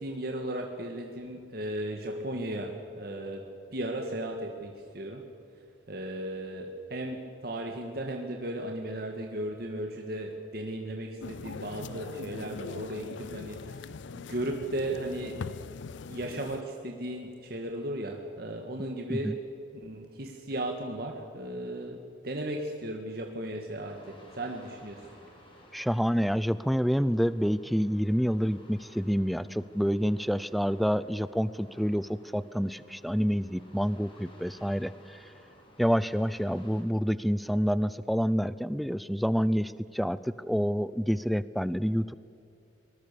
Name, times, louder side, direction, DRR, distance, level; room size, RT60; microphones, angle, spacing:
voice 1, 0.0-3.4 3.7-5.2 5.9-15.4 16.1-19.3 19.7-22.0 22.2-25.1, right 1 dB, 55° right, 2 dB, 1.8 m, -36 dB
sound 1, 11.2-16.6, left 5 dB, 75° left, 0.4 m, -41 dB
sound 2, 23.8-36.8, left 1 dB, 25° left, 3.7 m, -56 dB
voice 2, 25.7-35.3 35.8-42.1, equal, ahead, 16 dB, 0.4 m, -28 dB
23.5 x 20.5 x 6.9 m, 2.5 s
head